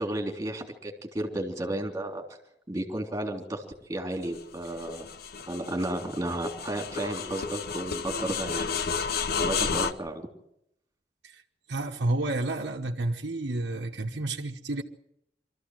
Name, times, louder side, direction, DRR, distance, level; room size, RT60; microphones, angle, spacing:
voice 1, 0.0-2.2 2.7-3.6 3.9-5.1 5.5-10.3, right 1 dB, 15° right, 3.5 m, -33 dB
sound 1, 4.2-9.9, left 5 dB, 60° left, 0.8 m, -32 dB
voice 2, 11.7-14.8, right 2 dB, 80° right, 1.2 m, -30 dB
24.0 x 14.0 x 7.7 m
head